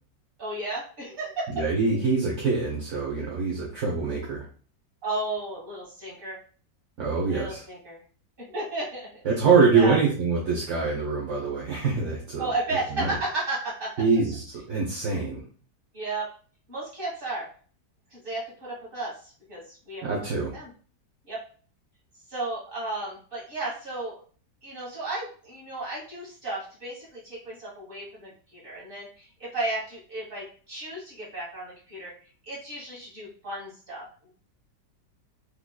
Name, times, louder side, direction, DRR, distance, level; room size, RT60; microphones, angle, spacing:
voice 1, 0.4-1.5 5.0-6.4 7.3-8.0 8.4-9.1 9.7-10.0 12.4-13.9 15.9-16.3 16.7-17.5 18.1-20.0 20.5-20.7 21.3-21.4 22.3-24.2 24.6-32.1 32.4-34.3, right 2 dB, 30° right, -5 dB, 1.6 m, -33 dB
voice 2, 1.5-4.4 7.0-7.6 9.2-12.5 13.0-13.1 14.0-15.4 20.0-20.5, right 4 dB, 55° right, -4 dB, 1.0 m, -24 dB
3.7 x 3.2 x 2.3 m, 0.42 s
omnidirectional pair, 2.0 m